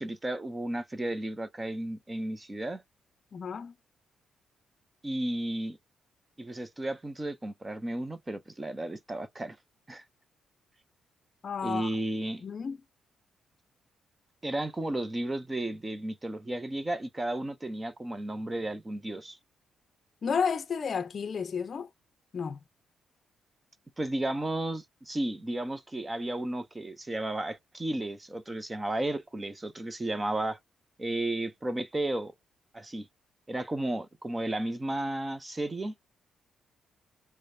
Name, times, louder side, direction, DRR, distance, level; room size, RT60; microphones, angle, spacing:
voice 1, 0.0-2.8 5.0-5.8 6.4-9.6 9.9-10.0 11.6-12.4 14.4-19.4 24.0-30.6 31.0-32.3 32.7-33.1 33.5-35.9, right 1 dB, 15° right, 0.6 m, -33 dB
voice 2, 3.3-3.7 11.4-11.9 12.4-12.8 20.2-21.9 22.3-22.6, left 6 dB, 40° left, 0.6 m, -31 dB
4.9 x 2.1 x 2.7 m
cardioid pair, 140°, 0 cm